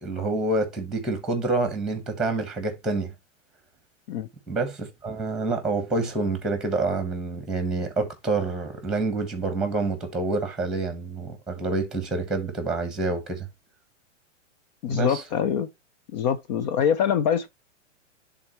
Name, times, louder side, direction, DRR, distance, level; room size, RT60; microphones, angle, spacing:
voice 1, 0.0-3.1 4.5-13.5 14.9-15.2, right 3 dB, ahead, 1.3 m, -27 dB
voice 2, 14.8-15.7 16.1-17.5, left 8 dB, 35° left, 0.5 m, -24 dB
10.5 x 3.7 x 3.0 m
hypercardioid pair, 135°, 37 cm